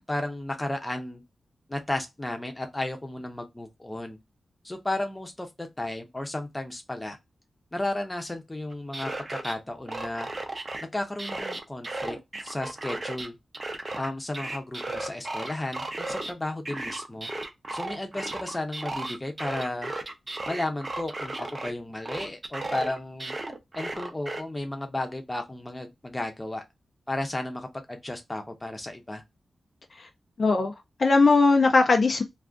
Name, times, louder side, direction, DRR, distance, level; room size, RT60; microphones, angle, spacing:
voice 1, 0.1-1.2 1.7-4.2 4.6-7.2 7.7-10.3 10.9-12.2 12.4-13.4 14.0-17.3 17.7-19.9 20.5-23.3 23.7-26.6 27.1-29.2, left 1 dB, 15° left, 0.7 m, -33 dB
sound 1, 8.7-9.5 9.9-10.8 11.2-13.3 13.5-16.3 16.7-21.7 22.1-24.4, right 2 dB, 35° right, 0.6 m, -35 dB
voice 2, 30.4-30.7 31.0-32.2, left 3 dB, 50° left, 0.4 m, -19 dB
2.4 x 2.3 x 3.5 m
wide cardioid pair, 120°, 0 cm